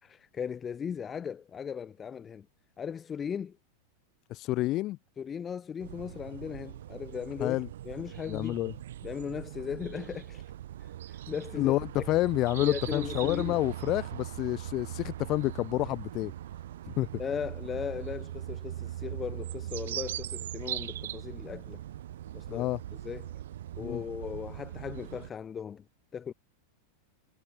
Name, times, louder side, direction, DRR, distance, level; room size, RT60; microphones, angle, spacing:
voice 1, 0.0-2.5 2.8-3.6 5.2-7.6 7.9-8.6 9.0-10.4 11.3-11.8 12.5-13.6 17.2-21.8 22.3-22.7 23.0-23.3 23.8-25.8 26.1-26.3, left 7 dB, 20° left, 4.0 m, -37 dB
voice 2, 4.3-5.0 7.4-7.7 8.3-8.7 11.6-16.3 16.9-17.1 22.5-22.8 23.8-24.0, left 17 dB, 35° left, 0.6 m, -29 dB
sound 1, 5.8-25.3, right 12 dB, 60° right, 2.7 m, -40 dB
figure-of-eight pair, 90°, 0 cm